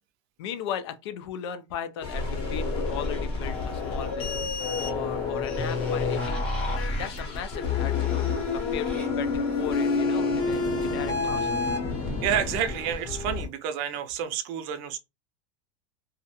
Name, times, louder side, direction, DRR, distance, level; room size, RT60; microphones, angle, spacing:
voice 1, 0.4-4.5 4.8-6.5 7.0-11.5, left 8 dB, 85° left, 0.5 m, -37 dB
sound 1, 2.0-13.5, left 4 dB, 40° left, 0.8 m, -28 dB
sound 2, 2.8-4.4 5.4-7.0 7.8-9.1, left 1 dB, 5° left, 0.7 m, -49 dB
voice 2, 12.2-15.0, right 9 dB, 50° right, 0.4 m, -29 dB
2.3 x 2.1 x 2.8 m
supercardioid pair, 160°, 14 cm